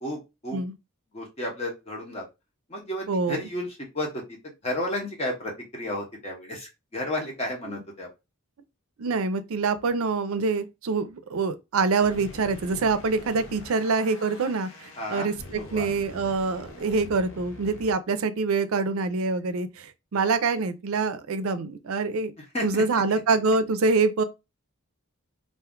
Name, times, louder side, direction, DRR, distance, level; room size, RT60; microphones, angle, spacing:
voice 1, 0.0-0.6 1.1-2.2 2.7-4.4 4.6-8.1 15.0-15.3 15.6-15.9 22.4-23.0, left 1 dB, 30° left, 0.7 m, -32 dB
voice 2, 3.1-3.4 9.0-22.3 22.6-24.2, right 4 dB, 70° right, 0.4 m, -25 dB
sound 1, 12.0-17.9, left 2 dB, 70° left, 0.7 m, -44 dB
2.5 x 2.2 x 3.6 m
head